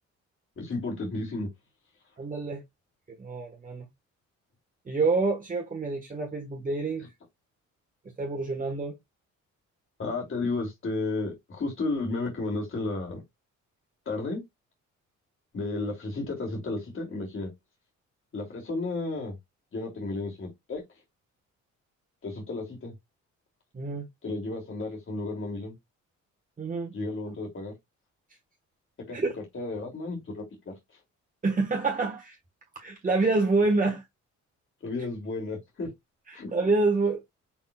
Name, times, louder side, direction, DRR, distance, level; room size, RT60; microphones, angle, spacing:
voice 1, 0.6-1.5 10.0-13.2 14.0-14.4 15.5-17.5 18.3-19.3 19.7-20.8 22.2-22.9 24.2-25.7 26.9-27.7 29.1-29.2 29.5-30.7 34.8-35.9 36.3-36.5, left 3 dB, 45° left, 2.9 m, -33 dB
voice 2, 2.2-2.6 3.1-3.9 4.9-7.1 8.2-8.9 23.7-24.1 26.6-26.9 29.1-29.3 31.4-32.4 32.8-34.0 36.3-37.2, right 3 dB, 25° right, 1.4 m, -27 dB
5.9 x 3.6 x 2.4 m
cardioid pair, 90°, 30 cm